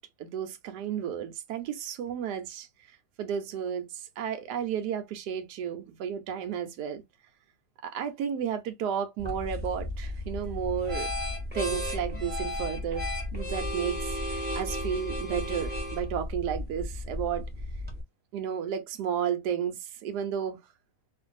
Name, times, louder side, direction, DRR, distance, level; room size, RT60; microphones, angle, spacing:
voice 1, 0.2-2.7 3.2-7.0 7.8-11.1 11.5-17.5 18.3-20.6, right 8 dB, 75° right, 1.2 m, -32 dB
sound 1, 9.2-18.0, left 1 dB, 5° right, 0.9 m, -34 dB
2.8 x 2.6 x 2.4 m
omnidirectional pair, 1.9 m